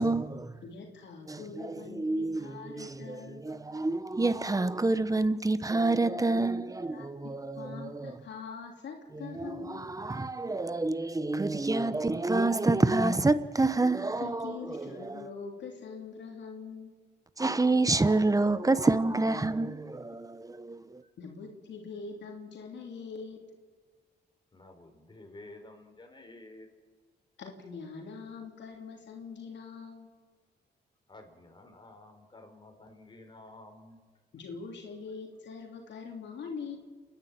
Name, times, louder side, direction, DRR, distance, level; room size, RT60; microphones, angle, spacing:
voice 1, 0.0-0.5 1.3-8.1 9.1-15.3 17.4-21.0, right 2 dB, 20° right, 1.1 m, -28 dB
voice 2, 0.6-3.4 6.8-7.1 7.6-9.8 14.2-17.1 21.2-23.4 27.4-30.1 34.3-36.8, left 5 dB, 80° left, 3.1 m, -43 dB
voice 3, 24.5-26.7 31.1-34.0, left 2 dB, 25° left, 4.5 m, -51 dB
29.5 x 10.5 x 8.8 m
cardioid pair, 85°, 18 cm